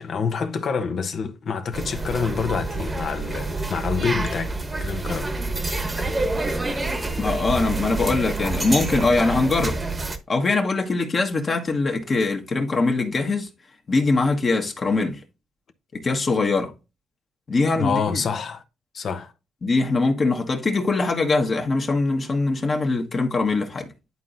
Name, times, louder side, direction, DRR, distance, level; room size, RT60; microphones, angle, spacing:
voice 1, 0.0-4.5 4.8-5.4 17.8-18.6 18.9-19.3, left 5 dB, 55° left, 0.8 m, -27 dB
sound 1, 1.7-10.2, right 2 dB, 20° right, 1.1 m, -27 dB
voice 2, 7.2-9.8 10.3-13.5 13.9-15.2 15.9-16.7 17.5-18.2 19.6-23.9, left 3 dB, 40° left, 1.3 m, -22 dB
11.0 x 3.8 x 2.6 m
cardioid pair, 90°, 0 cm